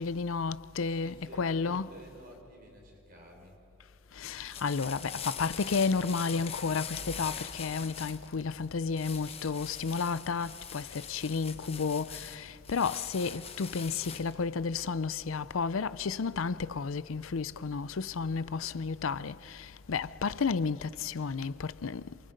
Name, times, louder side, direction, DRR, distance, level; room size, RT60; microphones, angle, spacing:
voice 1, 0.0-1.9 4.2-5.0 5.4-10.5 10.7-10.8 11.1-12.1 12.7-19.3 19.9-22.0, left 5 dB, 90° left, 0.6 m, -31 dB
voice 2, 0.8-3.6, right 1 dB, 45° right, 4.1 m, -51 dB
sound 1, 4.2-14.4, left 7 dB, 30° left, 1.0 m, -43 dB
27.5 x 27.0 x 5.2 m
head